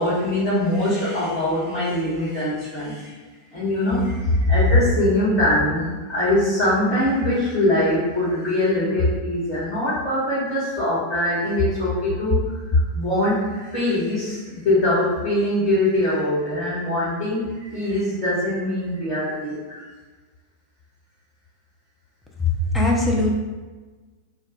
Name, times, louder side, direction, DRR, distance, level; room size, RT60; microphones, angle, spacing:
voice 1, 0.0-3.1 3.5-19.8, left 1 dB, 30° left, -12 dB, 1.4 m, -22 dB
voice 2, 22.4-23.3, left 2 dB, 5° left, -2 dB, 0.5 m, -20 dB
2.5 x 2.2 x 3.9 m, 1.3 s
figure-of-eight pair, 90°, 0 cm